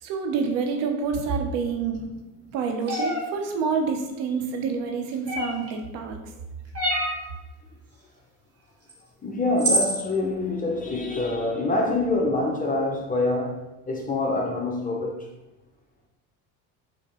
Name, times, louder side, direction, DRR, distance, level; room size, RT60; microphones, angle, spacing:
voice 1, 0.0-2.2 2.5-6.2, right 5 dB, 65° right, 0.8 m, -27 dB
sound 1, 2.9-3.2 5.3-5.7 6.7-7.2 8.9-9.0 9.6-10.0, right 1 dB, 30° right, 1.2 m, -25 dB
voice 2, 9.2-15.3, left 2 dB, 20° left, 0.5 m, -26 dB
4.8 x 2.1 x 3.0 m
hypercardioid pair, 75°, 45 cm